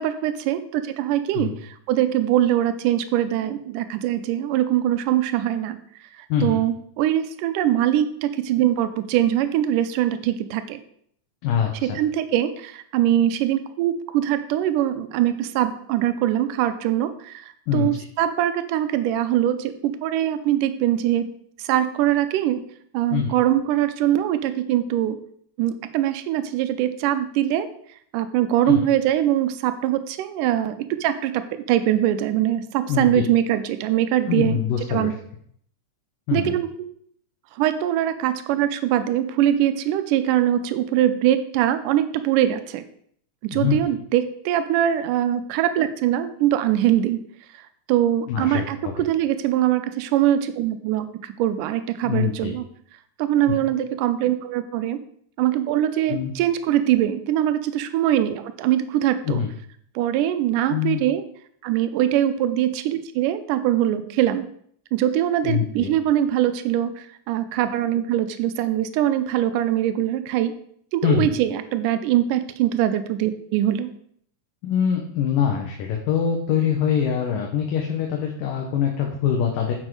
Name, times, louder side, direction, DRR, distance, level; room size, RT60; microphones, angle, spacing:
voice 1, 0.0-5.8 6.2-10.8 11.8-22.6 22.9-25.2 25.6-27.7 28.1-34.6 34.9-35.1 36.3-36.9 37.5-42.8 43.4-47.2 47.9-52.7 53.2-55.0 55.4-59.4 60.0-61.2 61.6-64.5 64.9-70.5 70.9-73.9, right 12 dB, 85° right, 10 dB, 2.2 m, -22 dB
voice 2, 6.3-6.6 11.4-12.0 17.7-17.9 23.1-23.3 28.6-28.8 32.9-33.2 34.3-35.1 36.3-36.5 43.5-43.8 48.3-48.6 52.0-52.5 56.1-56.3 59.3-59.5 60.7-61.0 65.4-65.9 71.0-71.3 74.6-79.7, left 8 dB, 90° left, 1 dB, 2.9 m, -23 dB
9.8 x 7.4 x 4.8 m, 0.65 s
omnidirectional pair, 3.8 m